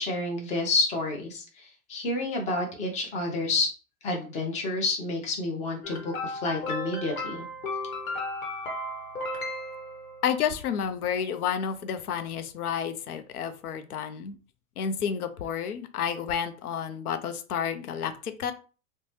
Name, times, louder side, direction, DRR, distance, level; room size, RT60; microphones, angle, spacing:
voice 1, 0.0-3.7 4.0-7.4, left 2 dB, 15° left, 1 dB, 0.6 m, -29 dB
sound 1, 5.8-10.5, left 1 dB, 70° left, 1.0 m, -35 dB
voice 2, 10.2-14.4 14.8-18.5, left 8 dB, 85° left, 10 dB, 0.5 m, -30 dB
2.7 x 2.1 x 3.1 m, 0.36 s
hypercardioid pair, 125°, 43 cm